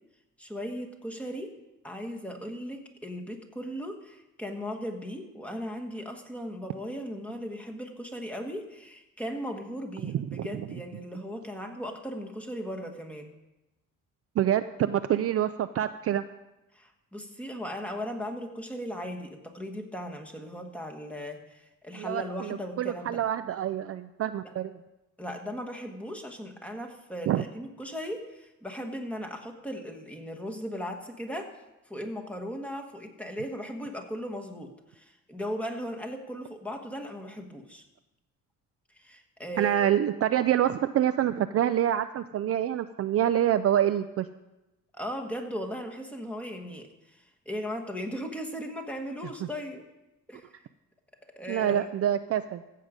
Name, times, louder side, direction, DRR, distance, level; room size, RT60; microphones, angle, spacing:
voice 1, 0.4-1.5 1.8-13.3 16.7-23.2 24.4-24.5 25.2-31.5 31.9-37.8 39.0-39.9 44.9-49.9 50.3-50.5 51.4-51.9, equal, 5° left, 2 dB, 1.3 m, -37 dB
voice 2, 10.0-10.7 14.4-16.2 22.0-24.8 27.3-27.4 39.6-44.3 51.5-52.6, right 11 dB, 50° right, 10 dB, 0.4 m, -26 dB
15.0 x 7.6 x 5.1 m, 0.98 s
cardioid pair, 130°, 32 cm